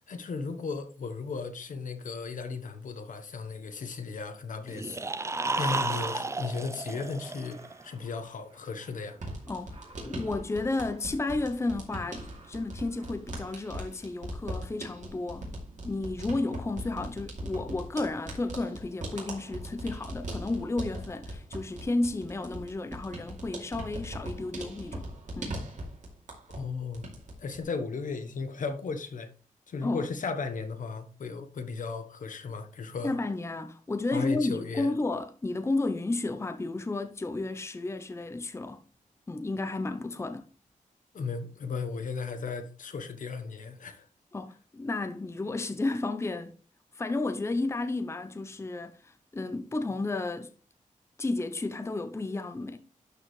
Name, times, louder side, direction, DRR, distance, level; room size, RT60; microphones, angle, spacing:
voice 1, 0.1-5.1 5.6-7.6 7.8-9.2 26.5-27.1 27.4-29.3 29.7-33.1 34.1-34.9 41.1-44.1, left 4 dB, 70° left, 1.2 m, -35 dB
sound 1, 4.7-7.8, right 3 dB, 20° right, 0.5 m, -32 dB
sound 2, 6.2-13.4, right 2 dB, 40° right, 2.0 m, -57 dB
sound 3, 9.1-26.7 26.9-27.6, right 1 dB, 60° right, 2.9 m, -40 dB
voice 2, 10.0-15.5 15.8-25.1 25.4-25.6 29.8-30.1 33.0-38.8 39.3-40.5 44.3-46.5 46.9-50.5 51.2-52.8, left 2 dB, 20° left, 0.7 m, -32 dB
12.0 x 4.8 x 3.2 m
wide cardioid pair, 135°, 14 cm